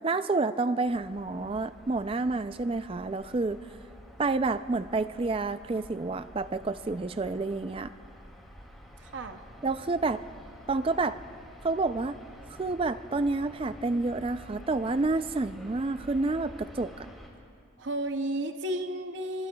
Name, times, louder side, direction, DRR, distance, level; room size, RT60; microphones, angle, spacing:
voice 1, 0.0-3.6 4.2-7.9 9.6-10.2 10.7-11.2 11.6-12.2 12.6-17.1, right 3 dB, 25° right, 12 dB, 0.3 m, -29 dB
sound 1, 0.8-17.3, equal, ahead, 2.4 m, -49 dB
voice 2, 9.0-9.4 17.8-19.5, right 1 dB, 60° right, 7 dB, 0.7 m, -33 dB
25.5 x 24.0 x 2.3 m, 2.4 s
head